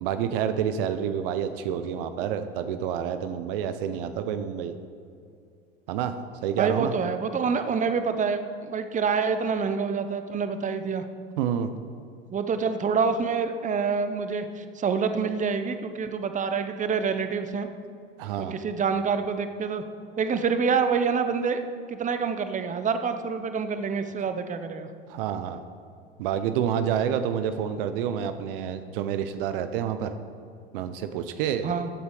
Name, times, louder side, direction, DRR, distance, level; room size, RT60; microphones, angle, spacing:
voice 1, 0.0-4.8 5.9-6.1 6.4-6.9 11.4-11.7 18.2-18.6 25.1-25.6 26.2-30.1 30.7-31.7, right 9 dB, 65° right, 10 dB, 0.8 m, -28 dB
voice 2, 6.6-11.0 12.3-17.7 18.4-19.8 20.2-21.6 21.9-24.9 31.6-31.9, right 5 dB, 25° right, 9 dB, 0.9 m, -27 dB
14.5 x 8.2 x 4.9 m, 2.4 s
hypercardioid pair, 80°, 30 cm